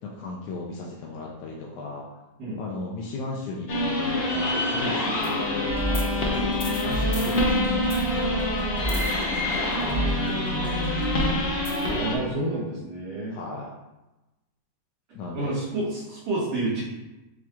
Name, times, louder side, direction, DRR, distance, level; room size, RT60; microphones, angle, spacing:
voice 1, 0.0-2.1 2.6-6.5 6.8-11.3 13.3-13.7 15.1-15.6, left 3 dB, 80° left, -3 dB, 1.2 m, -36 dB
sound 1, 3.7-12.2, left 1 dB, 50° left, 0.8 m, -26 dB
sound 2, 5.7-11.3, right 1 dB, 5° left, 1.0 m, -32 dB
voice 2, 11.9-13.4 15.3-16.8, right 2 dB, 85° right, -10 dB, 2.0 m, -29 dB
7.1 x 3.0 x 2.4 m, 1.0 s
omnidirectional pair, 1.8 m